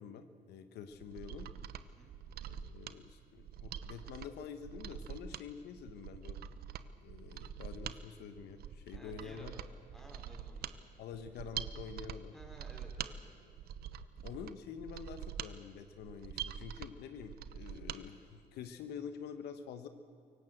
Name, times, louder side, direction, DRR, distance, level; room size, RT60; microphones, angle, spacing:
voice 1, 0.0-1.5 2.5-6.4 7.0-9.5 11.0-12.3 14.2-19.9, left 7 dB, 75° left, 9 dB, 1.3 m, -47 dB
Mechanisms, 0.9-18.0 18.4-18.5, right 9 dB, 65° right, 1.0 m, -45 dB
voice 2, 1.8-2.1 8.9-9.7 9.9-10.8 12.3-13.4, equal, ahead, 1 dB, 5.2 m, -55 dB
24.0 x 18.0 x 7.9 m, 2.6 s
cardioid pair, 110°, 17 cm